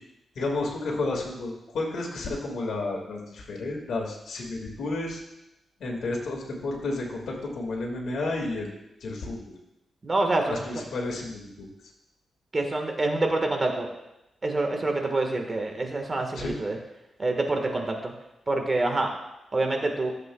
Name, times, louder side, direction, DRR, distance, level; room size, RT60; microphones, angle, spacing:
voice 1, 0.4-5.2 5.8-8.7 9.0-9.4 10.5-11.7 16.4-16.5, left 2 dB, 80° left, 0 dB, 2.0 m, -31 dB
voice 2, 10.0-10.6 12.5-13.9 14.4-16.8 17.2-18.1 18.5-19.1 19.5-20.1, right 2 dB, 30° right, 3 dB, 1.5 m, -26 dB
14.0 x 7.6 x 2.3 m, 0.91 s
cardioid pair, 95°, 0 cm